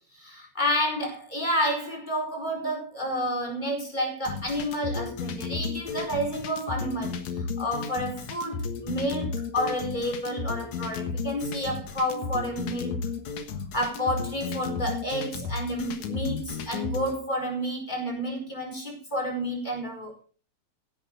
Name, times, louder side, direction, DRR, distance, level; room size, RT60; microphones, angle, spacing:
voice 1, 0.2-13.0 13.7-20.2, equal, 15° left, 4.7 m, -30 dB
sound 1, 4.2-17.1, left 5 dB, 75° left, 2.8 m, -33 dB
17.0 x 11.0 x 3.8 m
omnidirectional pair, 3.3 m